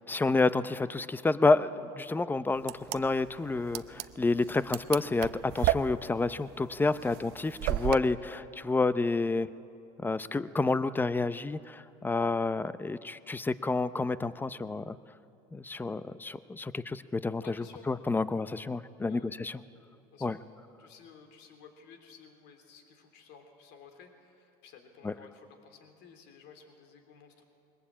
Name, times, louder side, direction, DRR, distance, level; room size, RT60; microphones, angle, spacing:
voice 1, 0.1-9.5 10.0-15.0 15.5-17.4 17.9-19.5 20.2-20.4 25.0-25.1, left 3 dB, 10° left, 15 dB, 0.6 m, -29 dB
sound 1, 2.6-8.0, right 14 dB, 55° right, 0.8 m, -33 dB
voice 2, 17.4-17.8 19.1-19.3 20.1-20.4 20.8-27.4, left 6 dB, 60° left, 6 dB, 3.3 m, -53 dB
21.5 x 19.5 x 8.8 m, 2.6 s
supercardioid pair, 110°, 20 cm